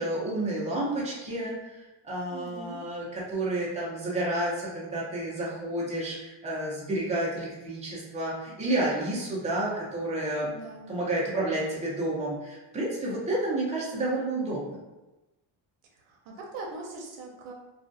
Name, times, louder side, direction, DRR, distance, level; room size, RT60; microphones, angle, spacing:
voice 1, 0.0-10.5 10.9-14.8, right 1 dB, 15° right, -5 dB, 0.6 m, -30 dB
voice 2, 2.3-2.8 10.5-11.0 16.1-17.5, right 2 dB, 85° right, -1 dB, 0.7 m, -41 dB
2.4 x 2.3 x 2.6 m, 1.0 s
cardioid pair, 125°, 48 cm